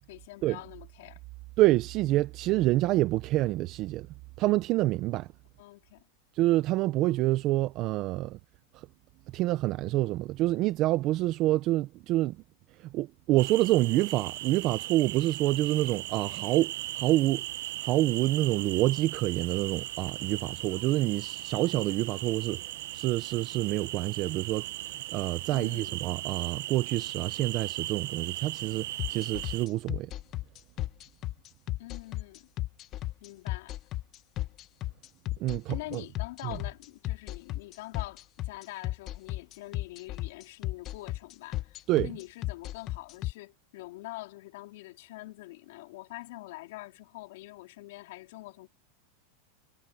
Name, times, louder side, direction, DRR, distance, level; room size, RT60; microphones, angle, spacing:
voice 1, 0.1-1.2 5.6-6.1 25.5-25.9 31.8-32.5 33.2-33.8 35.7-41.8 42.0-48.7, left 19 dB, 65° left, 3.7 m, -45 dB
voice 2, 1.6-4.1 4.4-5.3 6.3-8.4 8.7-8.9 9.3-12.4 12.7-17.4 17.8-30.1 35.4-36.0 36.4-36.6 41.9-42.1, right 17 dB, 40° right, 0.6 m, -27 dB
sound 1, 13.4-29.7, right 16 dB, 70° right, 0.8 m, -38 dB
sound 2, 29.0-43.3, left 16 dB, 35° left, 1.1 m, -34 dB
supercardioid pair, 155°, 0 cm